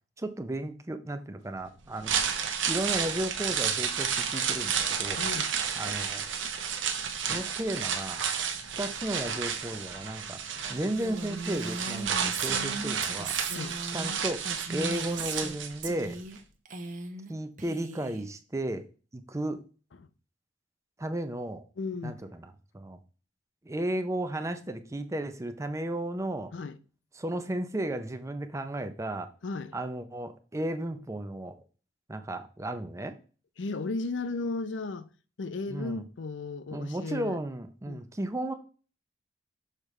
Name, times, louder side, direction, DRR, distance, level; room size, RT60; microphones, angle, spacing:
voice 1, 0.2-2.1 2.7-5.2 5.8-6.2 7.3-8.2 8.8-10.4 10.7-13.3 13.9-16.2 17.3-18.9 19.1-19.6 21.0-21.6 22.0-23.0 23.7-26.5 27.2-29.3 29.7-31.6 32.1-33.2 35.7-36.0 36.7-38.5, right 1 dB, 15° right, 0.5 m, -34 dB
sound 1, 1.8-16.1 16.4-16.5, right 7 dB, 85° right, 1.0 m, -31 dB
voice 2, 5.2-5.6 13.5-13.8 20.0-20.1 21.8-22.2 26.5-26.8 29.4-29.7 33.6-35.1 35.4-37.4 37.9-38.1, left 3 dB, 75° left, 0.6 m, -35 dB
Female speech woman speaking, 10.9-15.5 15.8-16.4 16.6-17.3 17.6-18.2, right 3 dB, 45° right, 0.9 m, -38 dB
6.5 x 5.0 x 3.2 m
head